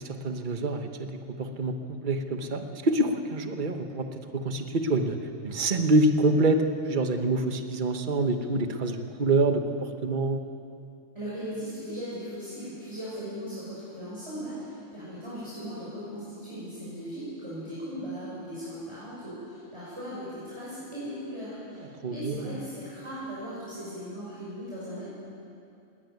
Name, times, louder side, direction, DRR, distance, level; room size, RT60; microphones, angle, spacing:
voice 1, 0.0-5.2 5.4-10.4 22.0-22.6, right 2 dB, 40° right, 6 dB, 1.3 m, -26 dB
voice 2, 11.1-25.1, equal, 25° right, -10 dB, 6.7 m, -38 dB
19.0 x 18.0 x 9.3 m, 2.6 s
omnidirectional pair, 1.3 m